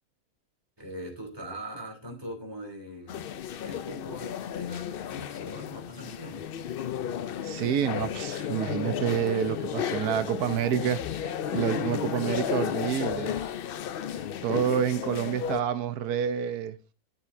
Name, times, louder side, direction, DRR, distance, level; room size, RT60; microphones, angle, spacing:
voice 1, 0.8-3.3 3.6-6.5, equal, 15° right, 2.9 m, -41 dB
sound 1, 3.1-15.6, left 9 dB, 85° left, 0.5 m, -33 dB
voice 2, 7.4-13.4 14.4-16.8, right 9 dB, 90° right, 1.3 m, -28 dB
11.5 x 7.0 x 2.6 m
omnidirectional pair, 1.6 m